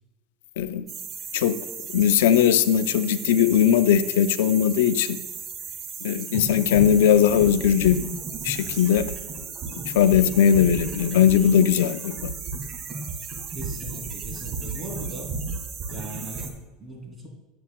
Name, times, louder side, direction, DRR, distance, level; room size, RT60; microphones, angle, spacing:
sound 1, 0.9-16.5, right 4 dB, 40° right, 1.4 m, -34 dB
voice 1, 1.9-5.2 6.0-8.0 8.4-9.1 9.9-12.3, left 9 dB, 85° left, 12 dB, 0.4 m, -19 dB
voice 2, 13.5-15.3 15.9-17.3, equal, 15° right, -1 dB, 2.7 m, -39 dB
9.9 x 8.4 x 2.2 m, 1.2 s
supercardioid pair, 115°, 0 cm